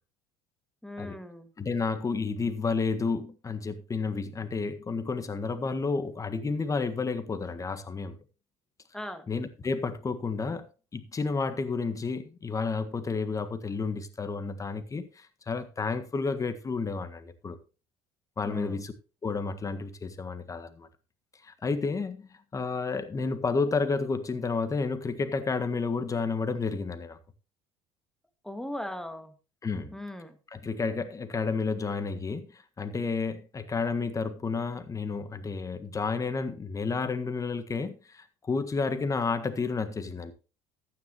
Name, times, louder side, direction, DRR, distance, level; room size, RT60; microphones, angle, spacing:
voice 1, 0.8-1.5 8.9-9.3 18.4-18.8 28.4-29.3 29.9-30.4, left 1 dB, 5° left, 1.9 m, -38 dB
voice 2, 1.6-8.2 9.3-10.7 10.9-17.6 18.4-18.9 19.2-20.9 21.4-27.2 29.6-30.0 30.5-40.3, left 4 dB, 25° left, 1.6 m, -31 dB
14.5 x 9.5 x 3.0 m
hypercardioid pair, 75°, 13 cm